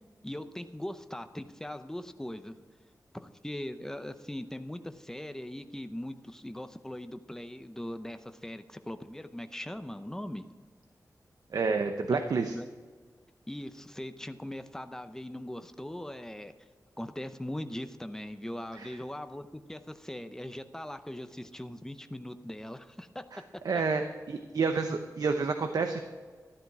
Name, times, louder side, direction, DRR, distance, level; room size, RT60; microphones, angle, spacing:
voice 1, 0.2-2.5 3.1-10.4 12.1-12.2 12.5-12.7 13.5-16.5 17.0-23.3 23.7-23.8, left 1 dB, 10° left, 9 dB, 0.7 m, -40 dB
voice 2, 11.5-12.6 18.8-18.9 23.3-23.4 23.6-24.0 24.3-26.0, right 4 dB, 70° right, 6 dB, 0.8 m, -29 dB
13.0 x 11.5 x 4.8 m, 1.5 s
wide cardioid pair, 130°, 7 cm